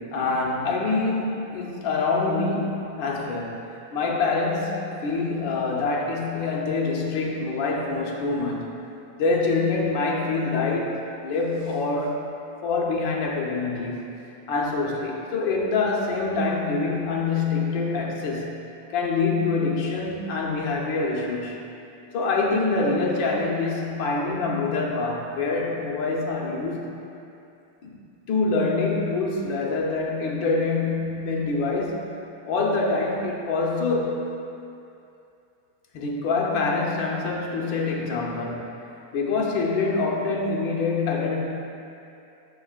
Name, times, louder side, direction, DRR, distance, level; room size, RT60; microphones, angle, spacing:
voice 1, 0.0-3.6 3.9-8.7 9.1-12.2 12.6-14.1 14.5-18.6 18.9-21.6 22.1-26.9 27.8-28.0 28.3-32.1 32.5-34.2 35.9-38.8 39.1-41.4, left 3 dB, 65° left, -2 dB, 1.5 m, -25 dB
12.0 x 5.3 x 2.4 m, 2.7 s
omnidirectional pair, 2.4 m